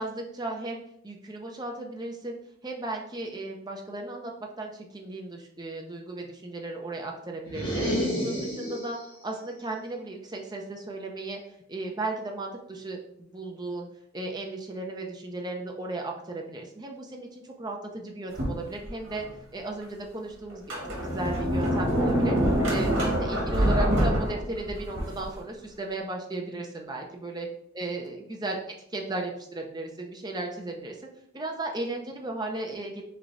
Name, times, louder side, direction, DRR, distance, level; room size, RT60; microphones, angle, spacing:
voice 1, 0.0-7.8 8.2-9.0 9.2-13.9 14.1-19.2 19.5-22.4 22.7-27.5 27.7-31.1 31.3-33.0, right 2 dB, 20° right, 1 dB, 0.5 m, -35 dB
sound 1, 7.4-9.1, equal, 25° left, 1.5 m, -29 dB
Sliding door, 18.3-19.3 19.8-19.9 20.5-25.3, equal, 55° right, 1.4 m, -26 dB
3.6 x 3.3 x 3.9 m, 0.72 s
head